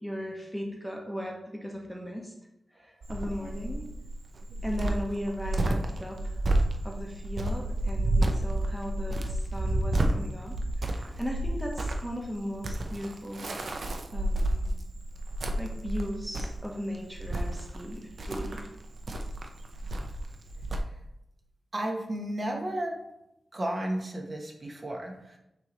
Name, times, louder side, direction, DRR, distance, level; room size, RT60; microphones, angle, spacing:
voice 1, 0.0-2.3 2.8-3.8 4.6-6.4 6.8-13.5 14.1-14.7 15.6-18.7, equal, ahead, 0 dB, 1.1 m, -37 dB
Cricket, 3.0-20.8, right 1 dB, 60° right, 0.7 m, -30 dB
voice 2, 21.7-23.0 23.5-25.4, right 1 dB, 40° right, 0 dB, 1.2 m, -33 dB
9.0 x 3.1 x 4.0 m, 0.85 s
cardioid pair, 75°, 0 cm